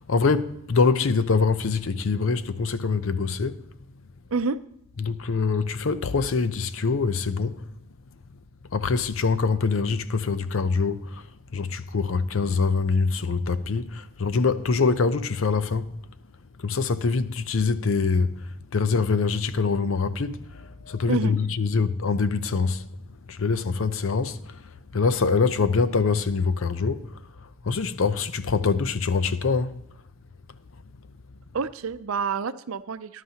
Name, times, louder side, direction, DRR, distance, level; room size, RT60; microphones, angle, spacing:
voice 1, 0.0-3.6 5.0-7.7 8.7-11.3 11.5-15.9 16.6-18.5 18.7-22.9 23.3-24.6 24.9-27.2 27.6-29.8, left 4 dB, 75° left, 0.6 m, -24 dB
voice 2, 31.5-33.2, right 5 dB, 85° right, 0.5 m, -28 dB
18.5 x 11.0 x 2.9 m
head